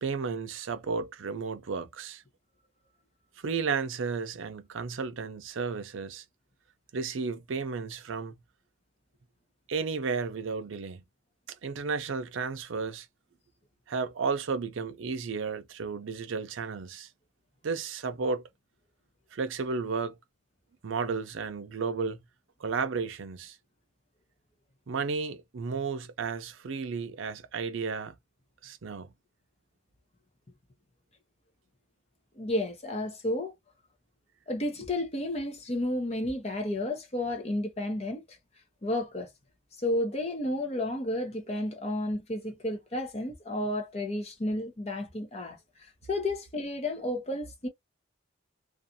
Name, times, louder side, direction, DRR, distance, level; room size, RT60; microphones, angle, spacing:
voice 1, 0.0-2.2 3.4-6.2 6.9-8.3 9.7-11.0 11.6-13.1 13.9-17.1 17.6-18.4 19.3-20.1 20.8-22.2 22.6-23.6 24.9-28.1 28.6-29.1, right 5 dB, 85° right, 0.5 m, -33 dB
voice 2, 32.4-33.5 34.5-38.4 38.8-39.3 39.8-47.7, left 1 dB, 30° left, 0.7 m, -32 dB
2.5 x 2.4 x 2.7 m
head